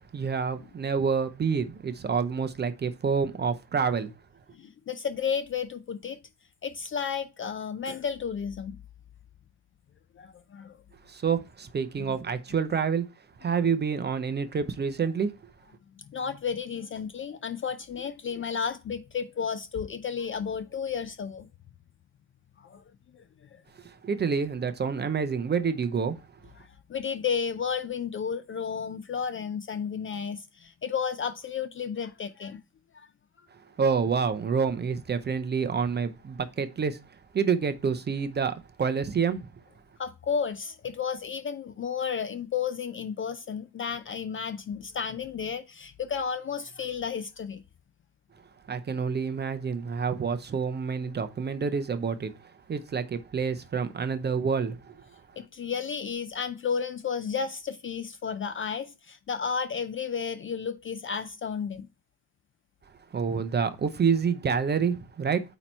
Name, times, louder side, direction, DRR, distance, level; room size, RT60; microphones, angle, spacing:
voice 1, 0.1-4.1 11.1-13.1 13.4-15.3 23.8-26.1 33.8-37.0 37.3-39.5 48.7-55.2 63.1-65.4, right 6 dB, 20° right, 0.6 m, -28 dB
voice 2, 4.5-6.2 6.6-8.8 10.2-10.8 16.0-21.5 22.6-22.8 23.1-23.2 23.5-23.6 26.6-32.6 32.9-33.1 40.0-47.6 55.4-61.9, left 6 dB, 30° left, 0.4 m, -32 dB
8.7 x 3.0 x 4.3 m
supercardioid pair, 85°, 47 cm